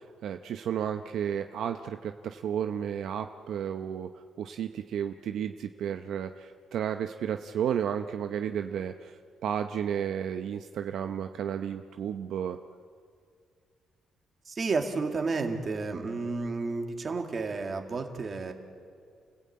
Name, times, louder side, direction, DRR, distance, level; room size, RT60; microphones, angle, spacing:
voice 1, 0.0-12.6, right 8 dB, 70° right, 7 dB, 0.7 m, -33 dB
voice 2, 14.5-18.5, right 4 dB, 35° right, 4 dB, 2.2 m, -31 dB
29.5 x 16.5 x 8.6 m, 2.2 s
cardioid pair, 140°, 0 cm